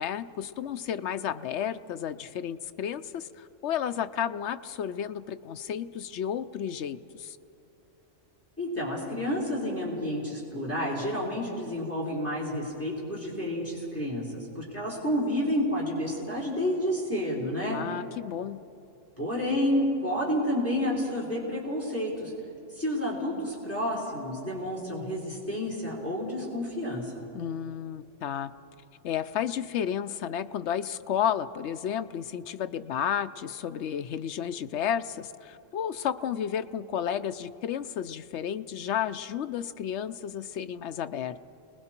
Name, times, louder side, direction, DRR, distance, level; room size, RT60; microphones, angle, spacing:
voice 1, 0.0-7.4 17.6-18.6 27.3-28.5 29.0-41.4, left 9 dB, 65° left, 11 dB, 0.9 m, -32 dB
voice 2, 8.6-17.8 19.2-22.3 22.7-27.2, left 1 dB, 10° left, -5 dB, 4.1 m, -30 dB
30.0 x 20.0 x 4.4 m, 2.8 s
omnidirectional pair, 1.3 m